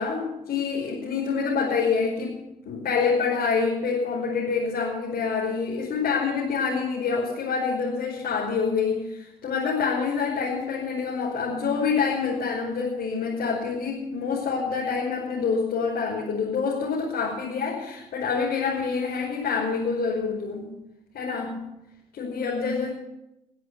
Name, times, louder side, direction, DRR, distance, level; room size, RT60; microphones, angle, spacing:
voice 1, 0.0-2.3 2.7-20.7 21.1-21.6 22.1-22.9, left 5 dB, 60° left, -5 dB, 5.4 m, -26 dB
21.0 x 7.9 x 8.2 m, 0.89 s
hypercardioid pair, 50°, 18 cm